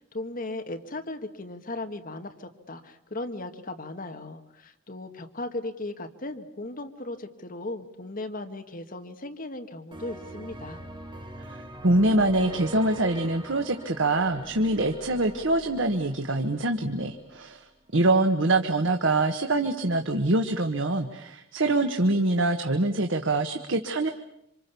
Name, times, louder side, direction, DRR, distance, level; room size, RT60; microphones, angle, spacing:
voice 1, 0.0-10.8, left 2 dB, 45° left, 7 dB, 1.8 m, -37 dB
sound 1, 9.9-17.5, right 1 dB, 25° right, 2.5 m, -44 dB
voice 2, 11.5-17.7 17.9-24.1, right 2 dB, 80° right, 5 dB, 1.5 m, -24 dB
27.5 x 26.5 x 7.0 m, 0.79 s
head